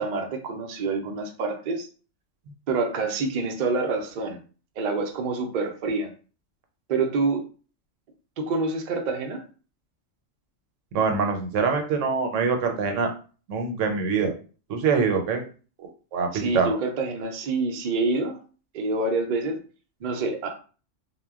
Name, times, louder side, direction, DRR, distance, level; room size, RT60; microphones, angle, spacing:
voice 1, 0.0-1.9 2.7-4.4 4.8-6.1 6.9-7.4 8.4-9.4 16.3-18.4 18.7-19.6 20.0-20.6, right 3 dB, 60° right, 4 dB, 0.5 m, -27 dB
voice 2, 10.9-13.1 13.5-14.3 14.7-15.4 15.8-16.8, right 5 dB, 80° right, 4 dB, 1.0 m, -24 dB
2.1 x 2.1 x 3.4 m, 0.38 s
omnidirectional pair, 1.3 m